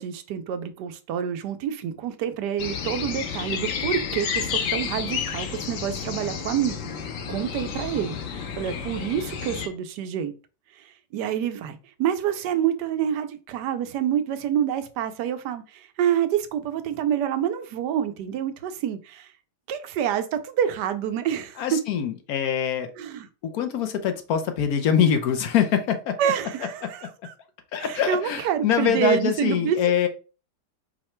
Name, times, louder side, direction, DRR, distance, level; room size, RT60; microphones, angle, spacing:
voice 1, 0.0-6.8 7.3-10.3 10.8-19.3 19.7-21.8 23.0-23.3 26.2-27.3 27.8-29.8, right 9 dB, 85° right, 1.2 m, -27 dB
sound 1, 2.6-9.7, left 7 dB, 90° left, 1.4 m, -31 dB
voice 2, 21.6-22.9 23.5-26.2 26.8-27.1 27.7-30.1, left 8 dB, 70° left, 1.0 m, -24 dB
4.7 x 2.2 x 4.2 m
omnidirectional pair, 1.8 m